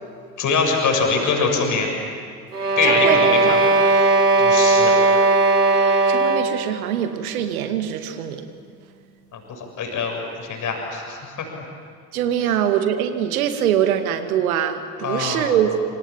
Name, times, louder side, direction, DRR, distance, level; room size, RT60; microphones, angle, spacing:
voice 1, 0.4-1.9 2.8-3.6 3.9-4.1 4.4-5.0 9.3-11.5 15.0-15.6, left 4 dB, 40° left, 2 dB, 6.8 m, -23 dB
sound 1, 2.5-6.7, right 3 dB, 85° right, 1.8 m, -17 dB
voice 2, 2.8-3.6 5.7-8.5 12.1-15.7, right 10 dB, 65° right, 8 dB, 2.2 m, -23 dB
27.5 x 27.0 x 7.5 m, 2.2 s
figure-of-eight pair, 60°, 45 cm